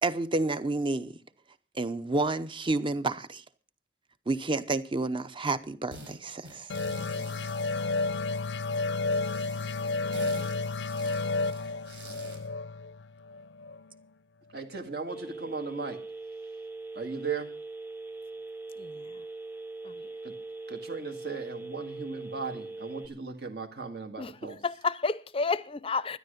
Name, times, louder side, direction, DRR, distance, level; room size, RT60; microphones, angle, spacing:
voice 1, 0.0-1.2 1.7-3.4 4.3-6.7, right 2 dB, 30° right, 0.7 m, -30 dB
sound 1, 5.9-6.1 6.4-8.6 9.1-12.5, right 2 dB, 85° right, 4.1 m, -48 dB
sound 2, 6.7-14.0, left 3 dB, 80° left, 0.5 m, -31 dB
voice 2, 14.5-16.0 17.0-17.5 20.2-20.3 20.7-24.6, right 4 dB, 65° right, 1.9 m, -37 dB
Telephone, 15.1-23.1, right 3 dB, 10° right, 1.0 m, -41 dB
voice 3, 18.8-19.2 19.8-20.1 24.2-26.2, left 4 dB, 30° left, 0.5 m, -31 dB
12.5 x 10.5 x 6.6 m
head